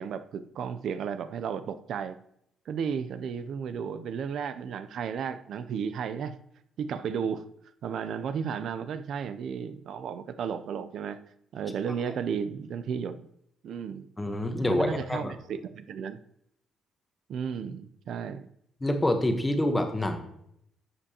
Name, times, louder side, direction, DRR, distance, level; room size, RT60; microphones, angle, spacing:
voice 1, 0.0-2.2 2.7-6.3 6.8-7.4 7.8-11.2 11.5-13.3 13.6-14.1 14.6-16.2 17.3-18.5, right 7 dB, 60° right, 12 dB, 0.5 m, -33 dB
voice 2, 14.2-15.3 18.8-20.2, left 1 dB, 10° left, 6 dB, 1.0 m, -26 dB
11.0 x 7.6 x 2.9 m, 0.74 s
cardioid pair, 145°, 0 cm